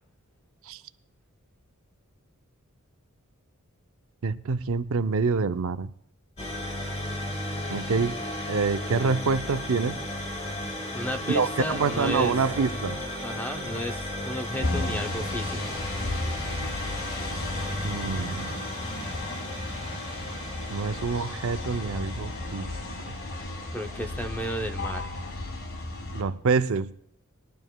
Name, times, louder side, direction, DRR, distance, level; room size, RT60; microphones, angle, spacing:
voice 1, 4.2-5.9 7.7-8.2 8.5-10.0 11.3-13.0 17.8-18.5 20.7-22.7 26.1-26.9, right 4 dB, 70° right, 0.5 m, -26 dB
sound 1, 6.4-24.1, left 1 dB, 30° left, 1.3 m, -35 dB
voice 2, 10.9-12.3 13.2-15.8 23.7-25.0, equal, 10° left, 0.6 m, -33 dB
sound 2, 14.6-26.2, left 2 dB, 60° left, 1.6 m, -34 dB
20.5 x 11.0 x 2.3 m
head